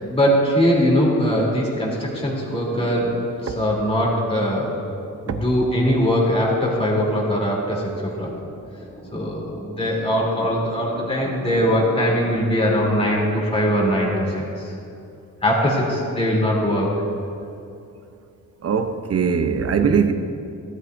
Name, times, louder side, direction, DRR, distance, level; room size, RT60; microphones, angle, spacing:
voice 1, 0.0-4.7 5.2-7.8 8.2-14.8 15.4-17.0, equal, 20° left, -4 dB, 3.3 m, -21 dB
voice 2, 18.6-20.1, right 6 dB, 50° right, 7 dB, 0.9 m, -20 dB
16.5 x 12.5 x 2.7 m, 2.6 s
cardioid pair, 115°, 32 cm